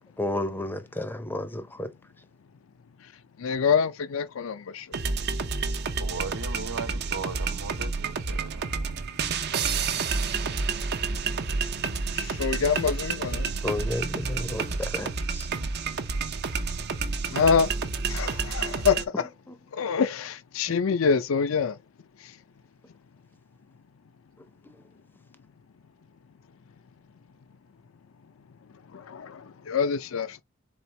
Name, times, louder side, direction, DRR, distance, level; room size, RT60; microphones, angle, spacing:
voice 1, 0.2-1.9 13.6-15.5, left 1 dB, 10° left, 0.6 m, -32 dB
voice 2, 3.4-4.9 12.2-13.5 17.3-17.7 18.1-19.3 19.7-21.7 28.9-30.4, left 6 dB, 75° left, 0.5 m, -26 dB
sound 1, 4.9-19.1, right 4 dB, 55° right, 0.6 m, -29 dB
voice 3, 6.0-9.1, right 4 dB, 80° right, 1.1 m, -38 dB
4.3 x 3.5 x 3.2 m
head